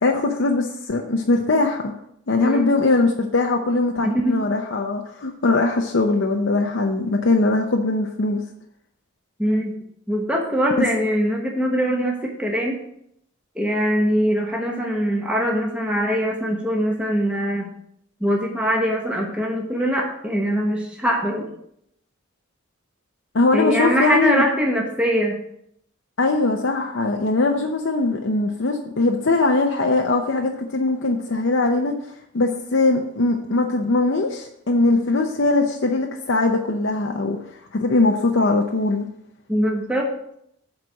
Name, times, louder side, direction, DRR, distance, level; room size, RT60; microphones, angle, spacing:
voice 1, 0.0-1.9 2.3-8.4 23.3-24.4 26.2-31.9 32.3-37.4 37.7-39.1, left 3 dB, 60° left, 2 dB, 0.7 m, -21 dB
voice 2, 2.4-2.7 4.0-4.4 9.4-9.7 10.1-12.8 13.5-17.7 18.2-21.5 23.5-25.4 39.5-40.1, equal, 5° right, -1 dB, 1.0 m, -22 dB
7.6 x 4.2 x 6.2 m, 0.72 s
head